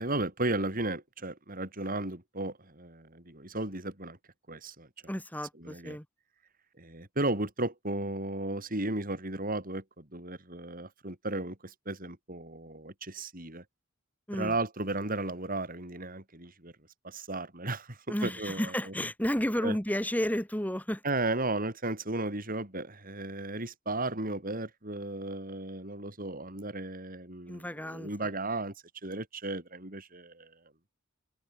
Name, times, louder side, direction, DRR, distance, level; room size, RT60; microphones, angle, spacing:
voice 1, 0.0-4.2 4.5-4.9 5.6-6.0 6.8-13.6 14.3-16.7 17.0-18.9 19.6-19.8 21.0-28.7 29.0-30.5, right 2 dB, 45° right, 5.9 m, -35 dB
voice 2, 5.1-6.0 14.3-14.6 18.1-21.0 27.5-28.3, equal, 10° left, 4.4 m, -32 dB
head